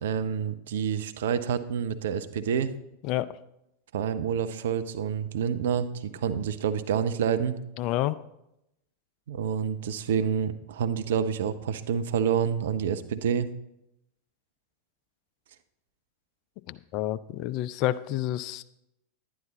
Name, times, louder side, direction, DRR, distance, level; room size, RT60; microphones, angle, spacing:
voice 1, 0.0-2.7 3.9-7.6 9.3-13.5, right 7 dB, 65° right, 11 dB, 0.6 m, -28 dB
voice 2, 7.8-8.2 16.7-18.6, left 14 dB, 45° left, 15 dB, 0.4 m, -29 dB
11.0 x 9.8 x 4.0 m, 0.85 s
figure-of-eight pair, 90°, 0 cm